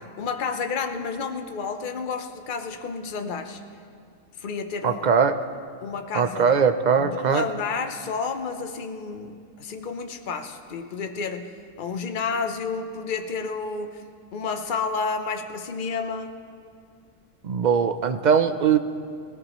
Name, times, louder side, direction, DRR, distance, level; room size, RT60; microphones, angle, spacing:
voice 1, 0.0-3.6 4.4-5.1 5.8-6.5 7.0-14.0 14.3-16.3, left 5 dB, 45° left, 6 dB, 0.9 m, -31 dB
voice 2, 4.8-5.3 6.1-7.4 17.4-18.8, right 6 dB, 50° right, 9 dB, 0.6 m, -20 dB
20.0 x 18.5 x 3.0 m, 2.3 s
omnidirectional pair, 1.3 m